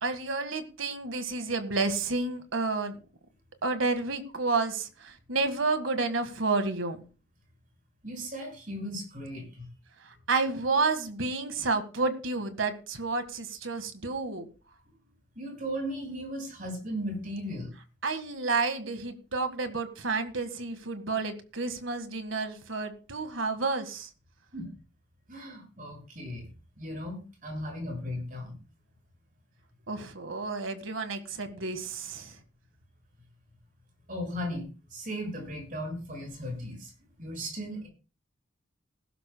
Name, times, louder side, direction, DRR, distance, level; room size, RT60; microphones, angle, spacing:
voice 1, 0.0-3.0 3.6-7.0 10.0-14.5 18.0-24.1 29.9-32.4, right 3 dB, 85° right, 8 dB, 1.7 m, -30 dB
voice 2, 8.0-9.7 15.3-17.7 24.5-24.7 25.3-26.5 26.8-28.6 34.1-36.9 37.2-37.9, equal, 45° right, 1 dB, 6.4 m, -36 dB
20.5 x 12.0 x 2.3 m, 0.35 s
head